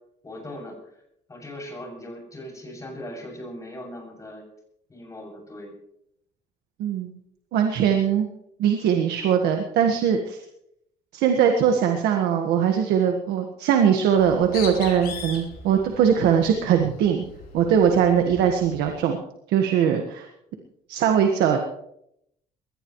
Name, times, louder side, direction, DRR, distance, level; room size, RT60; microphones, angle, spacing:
voice 1, 0.2-0.8 1.3-4.4 4.9-5.7 18.3-18.4, left 1 dB, 20° left, -1 dB, 7.3 m, -39 dB
voice 2, 6.8-7.2 7.5-8.3 8.6-10.4 11.1-17.2 17.5-19.2 19.5-20.3 20.9-21.6, right 8 dB, 90° right, 4 dB, 1.6 m, -21 dB
Bird, 14.1-19.0, left 4 dB, 75° left, 5.3 m, -39 dB
22.0 x 18.0 x 3.2 m, 0.76 s
cardioid pair, 130°, 16 cm